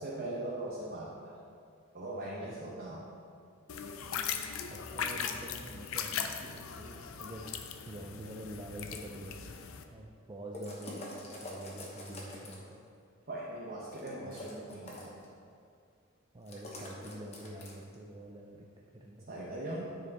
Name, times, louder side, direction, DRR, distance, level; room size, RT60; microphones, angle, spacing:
voice 1, 0.0-1.4 1.9-3.0 13.3-15.1 19.3-20.0, right 1 dB, 45° right, -5 dB, 1.0 m, -40 dB
sound 1, 3.7-9.8, left 7 dB, 70° left, 0.5 m, -39 dB
voice 2, 4.7-7.5 7.9-9.4 9.8-12.9 16.3-19.3, right 1 dB, 20° right, 0 dB, 0.5 m, -46 dB
sound 2, 10.5-12.7 13.9-15.3 16.5-17.9, left 1 dB, 30° left, 1.1 m, -45 dB
9.2 x 5.4 x 4.1 m, 2.3 s
head